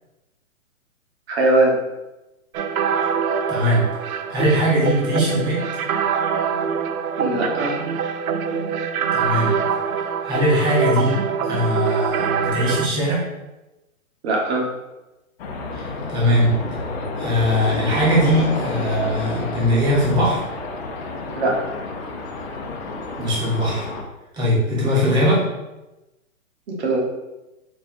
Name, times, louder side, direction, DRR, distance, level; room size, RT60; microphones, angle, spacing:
voice 1, 1.3-1.8 7.2-7.8 14.2-14.6 21.3-21.6 26.7-27.0, right 2 dB, 45° right, -2 dB, 1.3 m, -20 dB
sound 1, 2.5-12.9, right 7 dB, 85° right, 0.5 m, -24 dB
voice 2, 3.5-5.6 9.1-9.6 10.2-11.2 11.4-13.2 15.7-16.6 17.2-20.4 23.2-23.8 24.3-25.4, equal, 10° right, -6 dB, 0.8 m, -20 dB
sound 2, 15.4-24.0, left 3 dB, 45° left, 0.7 m, -30 dB
4.4 x 3.3 x 2.6 m, 1.0 s
hypercardioid pair, 150°, 42 cm